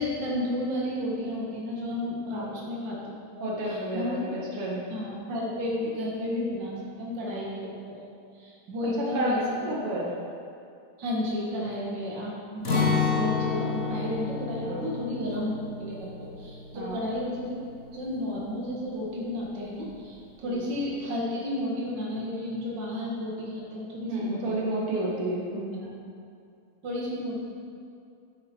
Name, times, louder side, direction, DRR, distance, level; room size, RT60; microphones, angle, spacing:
voice 1, 0.0-4.2 4.9-8.0 8.3-9.6 11.0-17.6 17.9-25.0 25.7-25.9 26.8-27.4, left 1 dB, 55° right, -4 dB, 2.5 m, -32 dB
voice 2, 2.3-2.7 3.4-4.9 9.0-9.3 9.6-10.1 14.6-14.9 16.7-17.0 20.4-20.6 24.1-25.7, right 2 dB, 90° right, -4 dB, 2.5 m, -31 dB
Acoustic guitar, 12.6-18.5 18.9-19.0 19.5-20.0, left 5 dB, 45° left, 1.4 m, -30 dB
10.5 x 9.8 x 4.5 m, 2.5 s
omnidirectional pair, 2.4 m